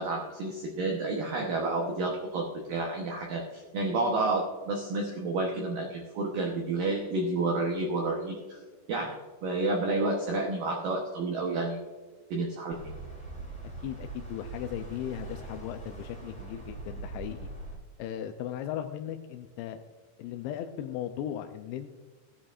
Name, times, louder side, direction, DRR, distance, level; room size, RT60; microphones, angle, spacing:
voice 1, 0.0-8.6 8.9-11.8 12.3-12.8, right 2 dB, 75° right, 0 dB, 2.1 m, -30 dB
sound 1, 12.7-17.7, right 3 dB, 5° left, 1.7 m, -42 dB
voice 2, 13.6-17.5 18.0-19.8 20.2-21.9, left 10 dB, 85° left, 6 dB, 2.6 m, -37 dB
16.5 x 11.0 x 2.5 m, 1.4 s
omnidirectional pair, 5.4 m